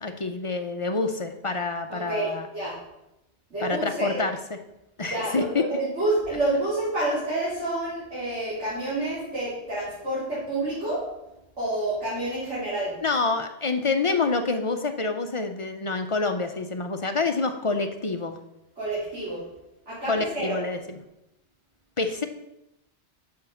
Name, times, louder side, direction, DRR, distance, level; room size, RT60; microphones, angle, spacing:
voice 1, 0.0-2.5 3.6-4.4 5.0-5.7 13.0-18.4 20.1-20.8 22.0-22.3, left 3 dB, 40° left, 6 dB, 0.5 m, -27 dB
voice 2, 1.9-2.7 3.5-4.2 5.0-11.0 11.6-13.0 18.8-19.4 19.9-20.6, right 2 dB, 80° right, -11 dB, 4.0 m, -28 dB
7.0 x 5.6 x 6.9 m, 0.90 s
omnidirectional pair, 1.2 m